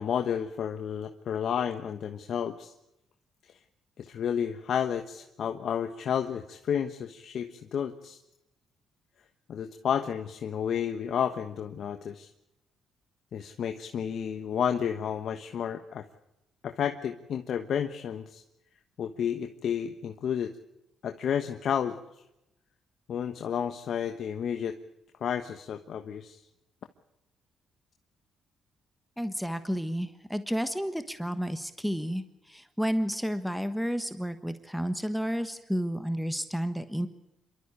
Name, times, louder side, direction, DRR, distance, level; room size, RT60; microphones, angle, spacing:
voice 1, 0.0-2.7 3.4-3.6 4.0-8.2 9.5-12.3 13.3-16.1 16.6-18.4 19.0-20.5 21.0-22.0 23.1-24.8 25.2-26.4, left 8 dB, 65° left, 6 dB, 1.3 m, -31 dB
voice 2, 29.2-37.1, equal, ahead, 10 dB, 1.4 m, -31 dB
27.0 x 13.0 x 8.3 m, 0.88 s
cardioid pair, 90°, 0 cm